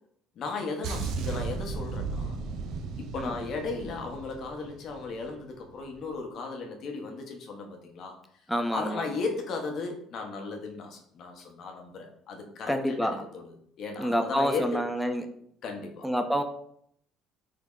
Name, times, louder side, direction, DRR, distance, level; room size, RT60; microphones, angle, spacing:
voice 1, 0.4-2.4 3.0-8.1 8.7-13.2 13.8-14.8 15.6-16.1, left 4 dB, 60° left, 2 dB, 0.8 m, -35 dB
sound 1, 0.8-5.4 5.7-5.9, right 4 dB, 70° right, 0.4 m, -35 dB
voice 2, 3.1-3.5 8.5-9.1 12.7-13.1 14.0-15.3 16.0-16.4, equal, ahead, 6 dB, 0.5 m, -28 dB
3.5 x 2.0 x 3.7 m, 0.67 s
supercardioid pair, 80°, 0 cm